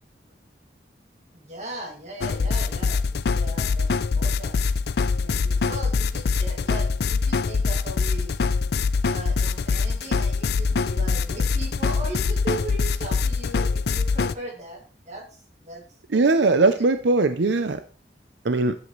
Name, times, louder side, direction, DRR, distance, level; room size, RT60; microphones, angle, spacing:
voice 1, 1.3-4.6 5.2-8.3 9.0-15.8 16.1-16.8, right 2 dB, 40° right, 0 dB, 2.4 m, -38 dB
sound 1, 2.2-14.3, left 4 dB, 60° left, 0.4 m, -24 dB
voice 2, 16.1-17.8 18.4-18.8, right 3 dB, 85° right, 10 dB, 0.6 m, -20 dB
10.5 x 7.6 x 3.2 m, 0.39 s
head